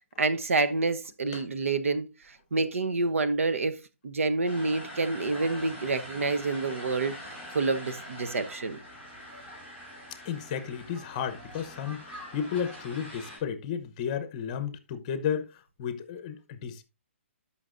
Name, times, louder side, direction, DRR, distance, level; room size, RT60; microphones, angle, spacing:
voice 1, 0.2-2.1 2.5-3.8 4.0-8.8, right 3 dB, 90° right, 1.0 m, -28 dB
sound 1, 4.4-13.4, equal, 20° right, 4.9 m, -44 dB
voice 2, 10.2-16.8, left 8 dB, 30° left, 0.9 m, -33 dB
13.5 x 5.8 x 2.5 m
hypercardioid pair, 160°, 7 cm